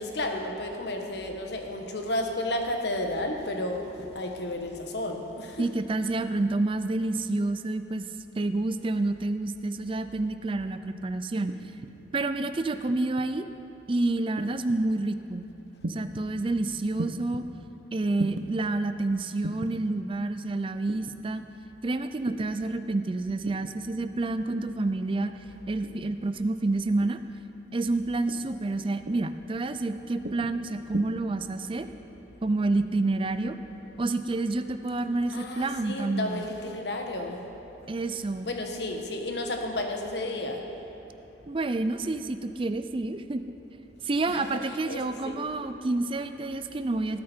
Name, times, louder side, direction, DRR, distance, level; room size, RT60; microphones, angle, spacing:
voice 1, 0.0-5.6 35.3-37.9 38.4-40.9 44.3-44.4 44.9-45.4, left 1 dB, 60° left, 3 dB, 1.3 m, -32 dB
voice 2, 5.6-8.1 8.4-11.5 12.1-13.5 13.9-15.5 15.9-17.5 17.9-21.4 21.8-25.4 25.7-27.2 27.7-31.9 32.4-33.6 34.0-36.5 37.9-38.5 41.5-43.4 44.0-47.2, right 2 dB, 30° right, 10 dB, 0.4 m, -28 dB
sound 1, 11.5-11.9 12.9-13.3 14.4-14.8 15.8-16.3 17.0-17.4 18.2-18.5 19.4-19.8 20.9-21.2 22.2-22.5 23.4-23.8 24.5-24.8 25.8-26.1 27.0-27.3 28.3-28.6 29.0-29.4 30.2-30.5 30.9-31.0, right 2 dB, 60° right, 0.7 m, -37 dB
18.5 x 8.6 x 4.5 m, 3.0 s
head